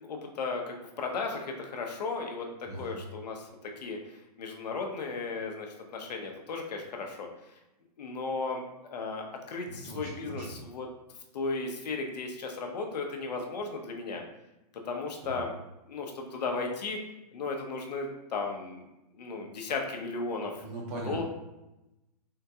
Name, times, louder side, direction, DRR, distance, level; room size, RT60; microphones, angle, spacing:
voice 1, 0.0-7.3 8.0-8.6 8.9-10.9 11.3-14.2 14.7-15.5 15.9-17.0 17.3-18.8 19.1-20.6 21.0-21.2, left 4 dB, 85° left, 2 dB, 0.7 m, -35 dB
voice 2, 2.7-3.0 9.7-10.6 15.2-15.4 20.6-21.2, right 2 dB, 20° right, -2 dB, 0.5 m, -39 dB
3.7 x 2.3 x 2.7 m, 0.95 s
hypercardioid pair, 170°, 21 cm